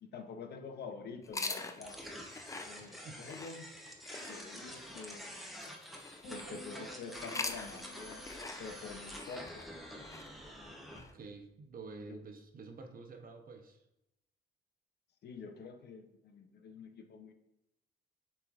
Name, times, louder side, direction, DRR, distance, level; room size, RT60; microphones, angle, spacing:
voice 1, 0.0-2.1 2.7-3.6 4.2-5.3 6.3-8.3 8.6-9.7 12.1-12.2 15.2-17.3, left 5 dB, 60° left, 7 dB, 0.6 m, -47 dB
sound 1, 1.2-6.6 7.1-11.1, left 3 dB, 15° left, 0.4 m, -45 dB
sound 2, 1.8-11.0, equal, ahead, 0.8 m, -48 dB
voice 2, 2.8-3.3 11.1-13.8, right 4 dB, 45° right, 5 dB, 0.7 m, -49 dB
sound 3, 6.2-10.6 10.9-11.3, right 2 dB, 80° left, 1.7 m, -54 dB
6.8 x 3.2 x 2.4 m, 0.87 s
cardioid pair, 90°, 20 cm